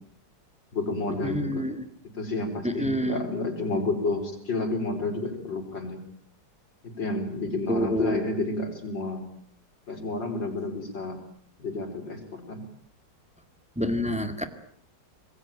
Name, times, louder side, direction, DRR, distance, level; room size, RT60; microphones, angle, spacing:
voice 1, 0.7-1.7 2.1-6.0 6.8-9.3 9.9-11.2 11.6-12.6, left 2 dB, 90° left, 6 dB, 5.2 m, -30 dB
voice 2, 1.2-1.8 2.6-3.3 7.7-8.3 13.8-14.4, equal, 5° right, 8 dB, 2.0 m, -27 dB
26.0 x 20.5 x 9.0 m, 0.63 s
omnidirectional pair, 1.9 m